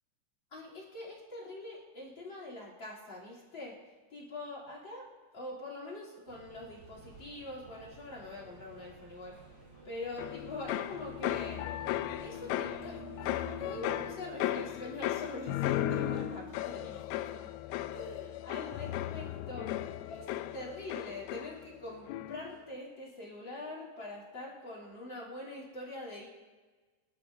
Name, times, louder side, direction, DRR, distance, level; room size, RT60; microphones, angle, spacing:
voice 1, 0.5-3.8 4.1-5.1 5.3-9.4 9.8-11.6 12.2-17.5 17.9-19.7 20.1-20.3 20.5-26.3, left 2 dB, 30° left, -3 dB, 3.2 m, -44 dB
sound 1, 6.3-14.1, right 5 dB, 25° right, 3.3 m, -53 dB
sound 2, 10.2-21.8 22.1-22.6, left 13 dB, 90° left, 3.2 m, -36 dB
27.5 x 11.5 x 2.7 m, 1.3 s
omnidirectional pair, 5.7 m